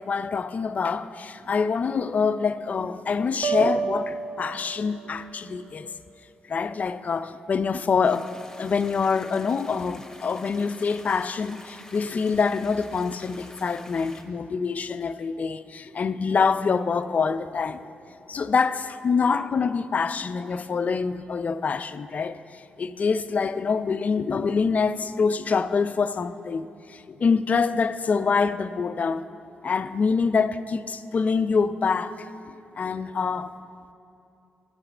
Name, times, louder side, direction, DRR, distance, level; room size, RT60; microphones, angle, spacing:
voice 1, 0.0-6.0 6.5-8.3 8.6-17.8 18.3-29.3 29.6-33.5, left 5 dB, 50° left, 12 dB, 0.5 m, -25 dB
sound 1, 3.4-5.3, right 6 dB, 65° right, 0.7 m, -29 dB
sound 2, 8.0-14.2, left 2 dB, 20° left, 1.4 m, -48 dB
14.5 x 7.9 x 4.4 m, 2.7 s
supercardioid pair, 55°, 3 cm